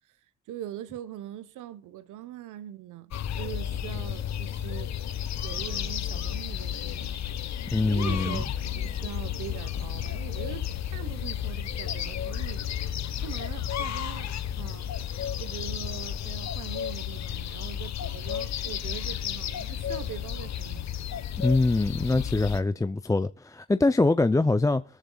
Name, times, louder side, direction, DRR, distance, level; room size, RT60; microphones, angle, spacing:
voice 1, 0.5-5.0 5.4-7.2 7.9-12.7 13.2-14.9 15.4-20.9, right 12 dB, 85° right, 1.2 m, -42 dB
sound 1, 3.1-22.6, left 10 dB, 65° left, 1.1 m, -32 dB
voice 2, 7.7-8.4 21.4-24.8, left 2 dB, 10° left, 0.5 m, -24 dB
21.5 x 14.0 x 2.4 m
cardioid pair, 90°, 30 cm